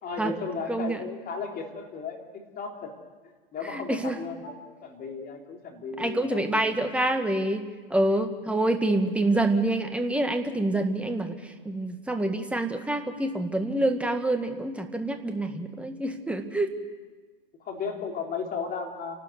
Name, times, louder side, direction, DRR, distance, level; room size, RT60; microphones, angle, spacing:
voice 1, 0.0-2.9 3.5-4.6 4.8-6.6 7.9-8.0 17.6-19.1, left 5 dB, 30° left, 2 dB, 3.8 m, -35 dB
voice 2, 0.7-1.0 3.7-4.1 6.0-7.6 7.9-11.3 11.6-16.7, right 1 dB, 5° right, 6 dB, 1.8 m, -26 dB
29.5 x 12.5 x 8.1 m, 1.4 s
hypercardioid pair, 105°, 30 cm